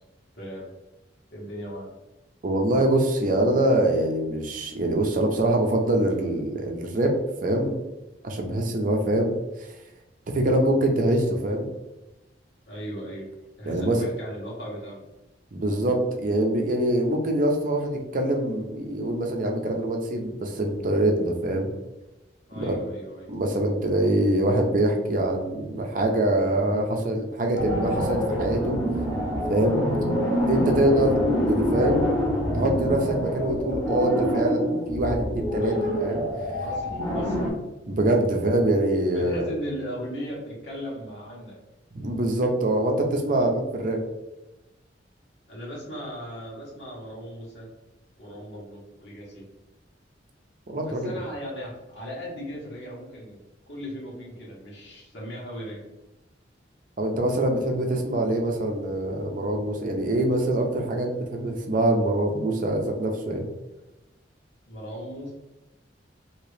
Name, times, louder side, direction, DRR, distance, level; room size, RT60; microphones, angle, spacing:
voice 1, 0.3-0.7 1.3-1.9 12.7-13.3 13.6-15.0 22.5-23.3 35.5-35.8 36.6-37.4 39.1-41.6 43.3-43.5 45.5-47.7 48.2-49.4 50.8-53.4 53.7-55.9 64.7-65.3, equal, 70° left, -5 dB, 1.3 m, -37 dB
voice 2, 2.4-7.1 7.4-7.7 8.2-9.8 10.3-11.7 13.7-14.0 15.5-21.7 22.5-22.8 23.3-28.8 29.5-29.8 30.5-31.2 31.5-32.1 32.5-36.6 37.9-39.5 41.9-44.0 50.7-51.1 57.0-63.5, right 1 dB, 50° right, 2 dB, 0.6 m, -24 dB
sound 1, 27.5-37.5, equal, 25° left, 0.9 m, -26 dB
2.9 x 2.9 x 3.2 m, 1.0 s
head